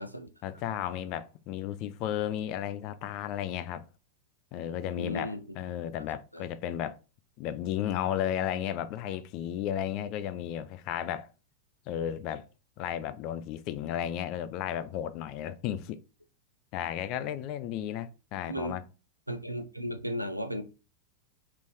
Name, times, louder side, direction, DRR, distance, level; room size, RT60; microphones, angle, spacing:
voice 1, 0.4-3.8 4.5-7.0 7.4-11.3 11.9-12.5 12.8-16.0 16.7-18.8, left 10 dB, 40° left, 0.3 m, -34 dB
voice 2, 5.0-5.4 6.0-6.1 6.3-6.5 18.5-18.8 19.3-20.6, equal, 90° right, 0.4 m, -35 dB
3.4 x 2.4 x 3.5 m
figure-of-eight pair, 90°, 0 cm